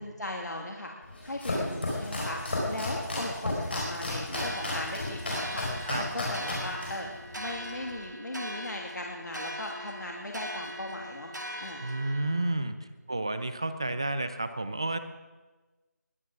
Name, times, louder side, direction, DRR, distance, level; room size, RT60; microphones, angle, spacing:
voice 1, 0.0-7.1 7.4-11.8, left 1 dB, 75° left, 0 dB, 2.3 m, -38 dB
Domestic sounds home sounds, 1.0-8.0, left 2 dB, 35° left, 4.8 m, -33 dB
bells.ringing church close, 4.3-12.5, equal, 90° right, 2.3 m, -40 dB
voice 2, 11.8-12.8 13.1-15.0, right 2 dB, 15° right, 11 dB, 0.5 m, -31 dB
20.5 x 9.5 x 6.0 m, 1.2 s
figure-of-eight pair, 175°, 9 cm